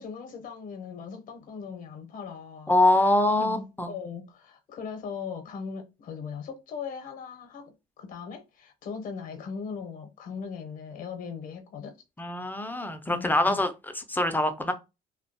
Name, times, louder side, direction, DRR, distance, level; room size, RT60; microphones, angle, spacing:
voice 1, 0.0-2.8 3.0-11.9 13.1-13.6, left 6 dB, 60° left, 0.6 m, -39 dB
voice 2, 2.7-3.9 12.2-13.7 14.1-14.7, left 1 dB, 10° left, 0.3 m, -24 dB
2.3 x 2.1 x 2.6 m
cardioid pair, 95°, 15 cm